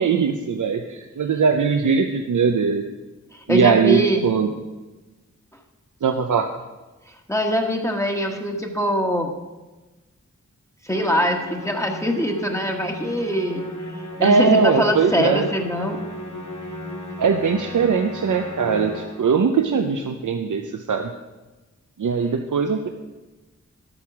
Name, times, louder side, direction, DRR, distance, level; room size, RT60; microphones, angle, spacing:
voice 1, 0.0-2.8 3.5-4.5 6.0-6.5 14.2-15.5 17.2-21.1 22.0-22.9, right 5 dB, 90° right, 5 dB, 0.7 m, -20 dB
voice 2, 3.3-4.2 7.3-9.3 10.8-13.6 14.2-16.0, equal, 10° left, 1 dB, 1.3 m, -23 dB
Musical instrument, 10.9-19.4, left 1 dB, 75° left, 2.0 m, -35 dB
11.5 x 8.9 x 6.0 m, 1.2 s
wide cardioid pair, 90°, 30 cm